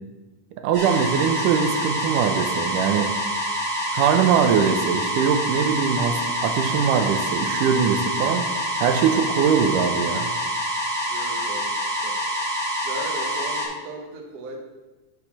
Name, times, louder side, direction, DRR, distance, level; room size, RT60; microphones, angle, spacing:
voice 1, 0.6-3.1 3.9-8.5 8.8-10.3, right 7 dB, 85° right, 7 dB, 2.3 m, -22 dB
sound 1, 0.7-13.6, equal, 40° right, 2.6 m, -26 dB
voice 2, 11.0-12.2 12.8-14.6, right 2 dB, 55° right, 0 dB, 1.0 m, -37 dB
8.4 x 5.3 x 5.9 m, 1.2 s
omnidirectional pair, 3.7 m